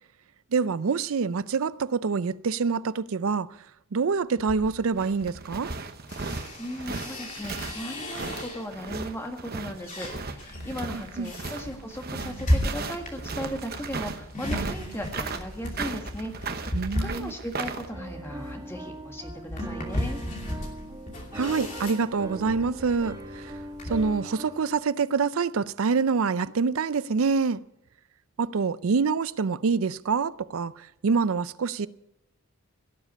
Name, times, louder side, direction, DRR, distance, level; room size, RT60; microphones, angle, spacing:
voice 1, 0.5-3.5 3.9-5.7 10.9-11.3 16.7-17.3 21.3-23.5 23.8-27.6 28.4-31.9, right 5 dB, 70° right, 0.5 m, -26 dB
sound 1, 4.4-8.9 9.3-24.1, left 1 dB, 35° left, 2.7 m, -35 dB
sound 2, 4.7-17.9, right 4 dB, 45° right, 1.0 m, -36 dB
voice 2, 6.6-16.3 16.6-16.7 17.0-20.2, equal, 10° left, 1.6 m, -37 dB
Piano, 17.9-24.8, right 1 dB, 15° right, 1.2 m, -40 dB
17.5 x 7.4 x 8.3 m
head